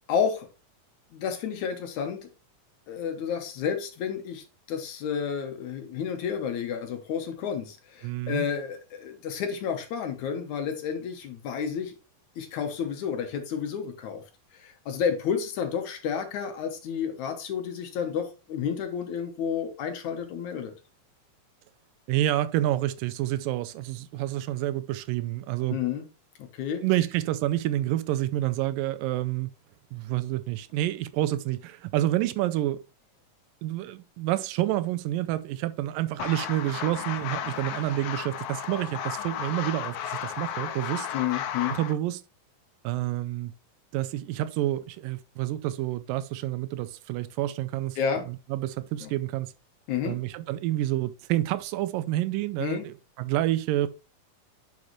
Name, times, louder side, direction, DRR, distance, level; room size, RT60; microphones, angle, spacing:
voice 1, 0.1-0.5 1.1-2.2 2.9-11.9 12.4-14.2 14.5-20.7 25.7-26.0 26.4-26.8 41.1-41.8 48.0-48.3 49.0-49.1 49.9-50.2 52.6-52.9, left 7 dB, 65° left, 2.2 m, -31 dB
voice 2, 8.0-8.4 22.1-25.8 26.8-29.5 29.9-32.8 33.6-41.1 41.7-42.2 42.8-43.5 43.9-48.0 48.3-49.5 50.1-53.9, right 14 dB, 85° right, 2.2 m, -28 dB
sound 1, 36.2-41.9, left 9 dB, 85° left, 2.5 m, -34 dB
9.9 x 5.4 x 3.1 m
omnidirectional pair, 4.0 m